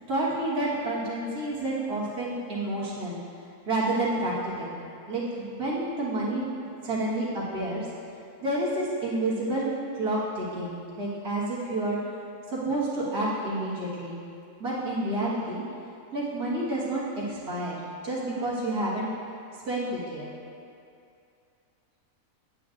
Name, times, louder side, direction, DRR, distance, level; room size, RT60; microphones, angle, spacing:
voice 1, 0.1-3.2 3.7-4.7 5.1-6.5 6.8-7.9 8.4-9.7 9.9-12.0 12.5-14.2 14.6-15.6 16.1-19.1 19.7-20.3, right 1 dB, 80° right, -9 dB, 2.0 m, -29 dB
9.0 x 8.6 x 2.5 m, 2.5 s
omnidirectional pair, 1.6 m